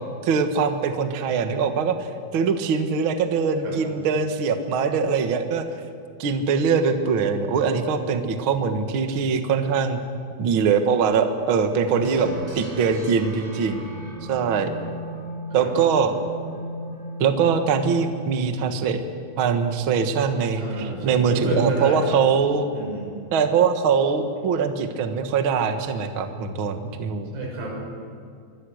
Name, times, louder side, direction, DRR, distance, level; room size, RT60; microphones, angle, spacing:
voice 1, 0.2-2.0 2.3-5.6 6.2-10.0 10.4-12.3 12.6-13.9 14.3-14.7 15.5-16.1 17.2-19.0 19.4-22.7 23.3-27.3, right 6 dB, 60° right, 6 dB, 1.3 m, -22 dB
voice 2, 11.9-12.4 15.5-16.0 20.6-22.1 22.7-23.1 27.3-27.8, right 2 dB, 80° right, -1 dB, 8.3 m, -30 dB
sound 1, 12.0-19.0, right 2 dB, 35° right, 5.3 m, -37 dB
25.5 x 24.0 x 6.5 m, 2.3 s
omnidirectional pair, 4.7 m